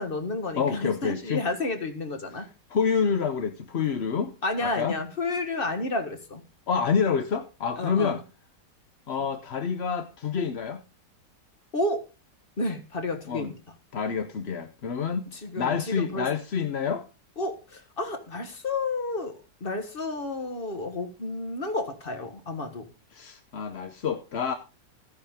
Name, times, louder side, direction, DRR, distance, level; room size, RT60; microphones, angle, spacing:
voice 1, 0.0-2.5 4.4-6.4 7.8-8.1 11.7-12.0 12.6-13.6 15.3-16.3 17.4-22.9, left 2 dB, 35° left, 1.5 m, -31 dB
voice 2, 0.6-1.4 2.7-4.3 4.6-5.0 6.7-8.2 9.1-10.8 13.3-13.5 13.9-15.2 15.6-17.1 23.1-24.5, left 6 dB, 50° left, 0.9 m, -27 dB
14.0 x 9.8 x 3.6 m
omnidirectional pair, 1.9 m